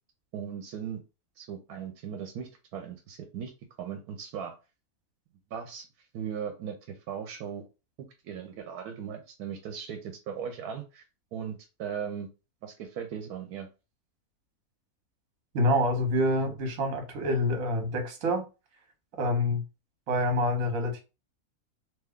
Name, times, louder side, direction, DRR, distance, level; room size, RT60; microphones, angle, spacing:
voice 1, 0.3-1.0 1.4-3.5 3.8-4.6 5.5-5.9 6.1-7.6 8.2-11.0 11.3-12.3 12.6-13.7, right 8 dB, 85° right, 1.1 m, -38 dB
voice 2, 15.5-18.4 19.2-19.6 20.1-21.0, left 1 dB, 65° right, 1.3 m, -26 dB
2.9 x 2.2 x 3.5 m
omnidirectional pair, 1.6 m